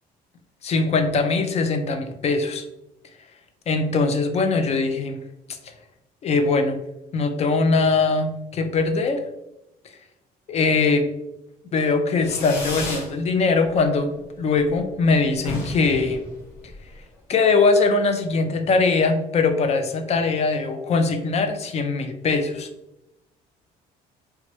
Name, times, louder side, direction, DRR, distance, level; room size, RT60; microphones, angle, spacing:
voice 1, 0.6-2.6 3.7-5.2 6.2-6.8 7.1-9.2 10.5-11.1 11.7-14.1 14.4-16.2 17.3-22.7, left 4 dB, 40° left, 7 dB, 0.4 m, -21 dB
Fireworks, 12.2-13.1 13.5-14.0 14.3-14.4 14.7-14.8 15.0-15.1 15.4-17.0, left 1 dB, 85° left, 0.9 m, -33 dB
2.9 x 2.2 x 2.9 m, 0.90 s
cardioid pair, 110°, 17 cm